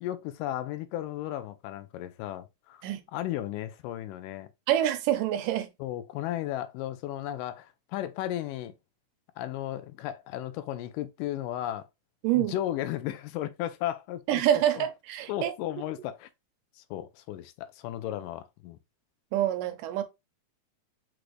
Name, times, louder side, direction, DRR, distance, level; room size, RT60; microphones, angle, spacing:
voice 1, 0.0-2.8 3.1-4.5 5.8-8.7 9.4-11.9 12.4-14.4 14.8-14.9 15.3-16.3 16.8-18.8, left 13 dB, 85° left, 2.2 m, -35 dB
voice 2, 4.7-5.7 12.2-12.5 14.3-15.5 19.3-20.0, right 12 dB, 85° right, 2.3 m, -26 dB
6.0 x 2.6 x 3.1 m
omnidirectional pair, 3.7 m